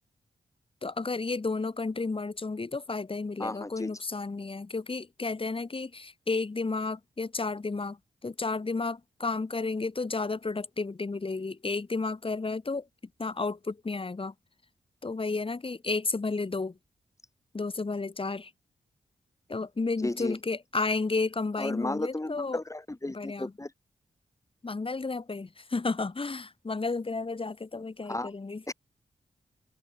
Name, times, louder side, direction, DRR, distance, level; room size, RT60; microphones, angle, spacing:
voice 1, 0.8-12.9 13.2-14.3 15.0-16.8 17.5-18.5 19.5-22.6 23.1-23.5 24.6-28.6, left 3 dB, 40° left, 3.0 m, -32 dB
voice 2, 3.4-4.0 20.0-20.4 21.6-23.7 28.1-28.3 28.7-28.8, left 2 dB, 20° left, 4.4 m, -34 dB
supercardioid pair, 40°, 14 cm